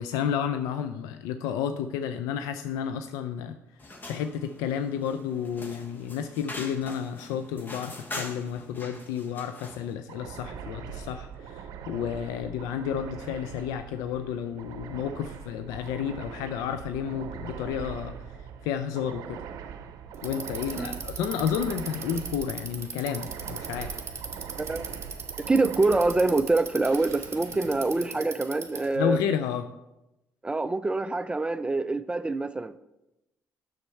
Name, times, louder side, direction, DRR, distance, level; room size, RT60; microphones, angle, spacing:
voice 1, 0.0-3.6 4.0-18.1 18.6-19.4 20.2-23.9 29.0-29.7, left 8 dB, 85° left, 9 dB, 0.3 m, -31 dB
sound 1, 3.8-9.9, left 2 dB, 35° left, 1.2 m, -42 dB
sound 2, 10.1-28.9, right 7 dB, 75° right, 0.6 m, -42 dB
Bicycle, 20.1-28.9, right 5 dB, 45° right, 1.2 m, -38 dB
voice 2, 24.6-24.9 25.4-29.2 30.4-32.8, right 3 dB, 15° right, 13 dB, 0.3 m, -25 dB
7.1 x 6.5 x 4.3 m, 0.94 s
supercardioid pair, 70°, 6 cm